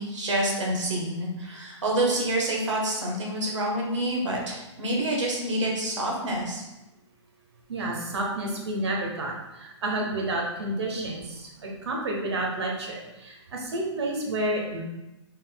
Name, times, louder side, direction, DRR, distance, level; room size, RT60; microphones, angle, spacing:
voice 1, 0.0-6.6, right 1 dB, 80° right, -1 dB, 1.3 m, -27 dB
voice 2, 7.7-14.8, right 1 dB, 60° right, 0 dB, 1.1 m, -30 dB
4.1 x 3.9 x 2.3 m, 0.99 s
hypercardioid pair, 170°, 15 cm